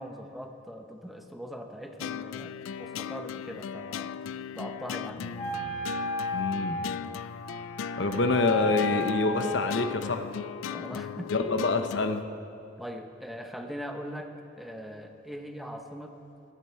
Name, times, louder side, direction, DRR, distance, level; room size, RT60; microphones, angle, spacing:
voice 1, 0.0-4.2 4.5-5.2 10.6-11.5 12.8-16.2, equal, ahead, 4 dB, 0.8 m, -41 dB
sound 1, 2.0-12.2, left 8 dB, 90° left, 0.3 m, -38 dB
voice 2, 5.2-5.8 6.3-6.9 8.0-10.4 11.3-12.2, left 2 dB, 65° left, 8 dB, 0.8 m, -27 dB
Wind instrument woodwind instrument, 5.3-9.9, left 3 dB, 35° left, 3.8 m, -34 dB
15.5 x 13.0 x 4.5 m, 2.7 s
head